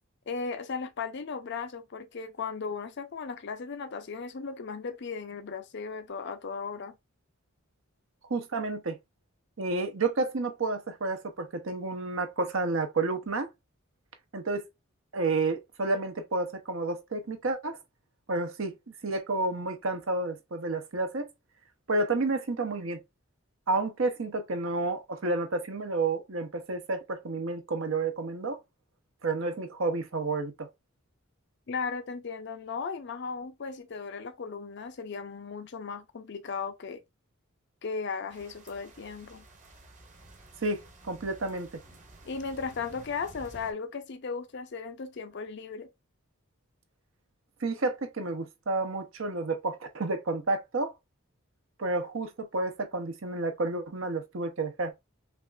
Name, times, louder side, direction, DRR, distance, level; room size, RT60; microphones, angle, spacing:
voice 1, 0.3-7.0 31.7-37.0 37.8-39.4 42.3-45.9, left 5 dB, 55° left, 0.5 m, -36 dB
voice 2, 8.3-9.0 9.6-13.5 14.3-14.7 15.1-17.8 18.3-18.7 19.0-21.3 21.9-23.0 23.7-28.6 29.2-30.7 40.6-41.7 47.6-50.9 51.8-54.9, right 3 dB, 65° right, 0.8 m, -30 dB
sound 1, 38.3-43.7, right 1 dB, 35° right, 1.1 m, -52 dB
5.7 x 2.5 x 2.3 m
head